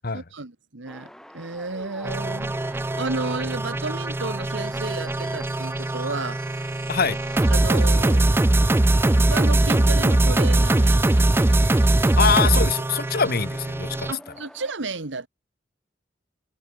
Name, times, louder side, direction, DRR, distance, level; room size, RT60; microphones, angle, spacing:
voice 1, 0.1-6.4 7.5-8.3 9.1-11.8 14.1-15.3, right 3 dB, 80° right, 1.6 m, -33 dB
sound 1, 0.9-14.7, equal, 5° left, 2.8 m, -48 dB
sound 2, 2.0-14.1, right 1 dB, 10° right, 0.4 m, -21 dB
sound 3, 5.4-12.4, left 5 dB, 25° left, 4.9 m, -53 dB
voice 2, 12.2-14.1, left 5 dB, 55° left, 1.4 m, -23 dB
head